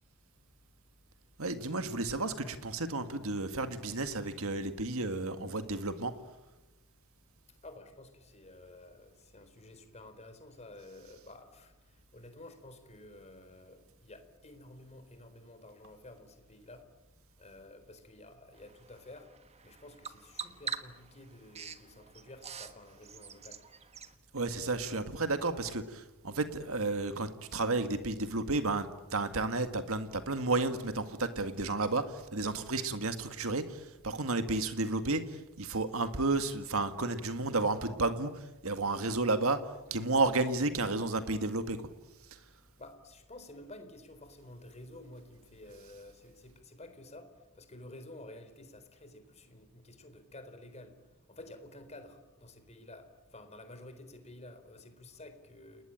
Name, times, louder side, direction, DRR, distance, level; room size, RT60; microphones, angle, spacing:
voice 1, 1.4-6.1 24.3-39.6 39.9-41.9, right 3 dB, 70° right, 9 dB, 1.9 m, -32 dB
voice 2, 7.6-16.9 17.4-19.3 19.6-23.6 42.7-51.0 51.3-55.8, left 1 dB, 30° left, 8 dB, 4.0 m, -51 dB
Bird vocalization bird call bird song, 18.5-24.1, right 6 dB, 30° right, 1.5 m, -45 dB
29.5 x 20.0 x 9.0 m, 1.0 s
head